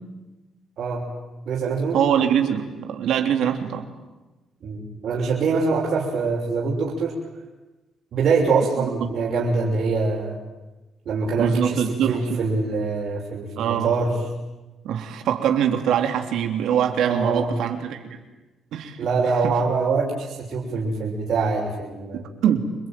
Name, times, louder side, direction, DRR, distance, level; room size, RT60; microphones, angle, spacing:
voice 1, 0.8-1.1 1.5-2.0 4.6-7.2 8.1-10.4 11.0-14.2 17.0-17.5 19.0-22.2, right 4 dB, 65° right, -3 dB, 6.3 m, -24 dB
voice 2, 1.9-3.9 8.8-9.2 11.4-12.4 13.5-13.9 14.8-18.2 18.7-19.1 19.4-19.5 22.1-22.6, right 9 dB, 80° right, 5 dB, 3.3 m, -23 dB
29.0 x 22.0 x 9.3 m, 1.1 s
cardioid pair, 90°, 0 cm